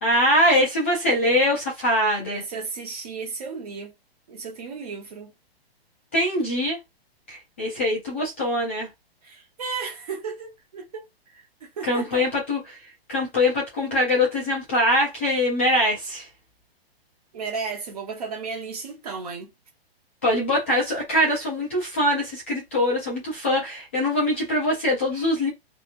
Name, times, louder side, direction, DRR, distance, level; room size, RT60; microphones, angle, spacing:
voice 1, 0.0-2.4 6.1-6.8 7.3-8.9 11.8-12.8 13.1-16.3 20.2-25.5, left 1 dB, 15° left, 0.4 m, -23 dB
voice 2, 2.2-3.9 4.3-5.3 9.2-12.3 17.3-19.5 25.1-25.3, right 5 dB, 40° right, 0.8 m, -34 dB
2.9 x 2.6 x 2.5 m
hypercardioid pair, 170°, 31 cm